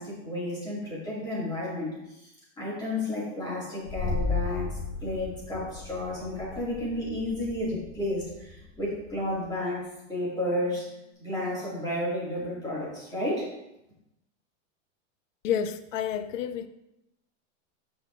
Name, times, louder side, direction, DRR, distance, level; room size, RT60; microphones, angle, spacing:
voice 1, 0.0-2.3 2.6-13.5, left 1 dB, 10° left, 2.3 m, -32 dB
sound 1, 3.9-9.4, left 4 dB, 55° left, 2.5 m, -35 dB
voice 2, 15.4-16.7, left 8 dB, 75° left, 0.7 m, -29 dB
8.7 x 5.8 x 2.6 m
supercardioid pair, 170°, 39 cm